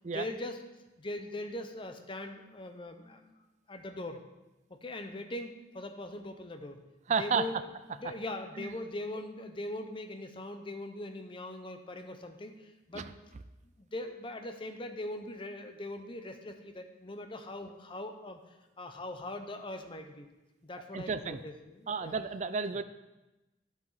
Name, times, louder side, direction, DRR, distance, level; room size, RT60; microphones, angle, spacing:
voice 1, 0.1-0.6 1.0-3.3 3.7-4.2 4.7-6.8 7.2-7.6 7.9-13.1 13.6-18.4 18.8-20.3 20.6-22.1, left 1 dB, 25° left, 6 dB, 0.6 m, -41 dB
voice 2, 7.1-7.5 8.6-8.7 12.9-13.0 20.9-21.4 21.9-22.8, right 5 dB, 40° right, 12 dB, 0.4 m, -31 dB
11.0 x 5.0 x 4.1 m, 1.0 s
head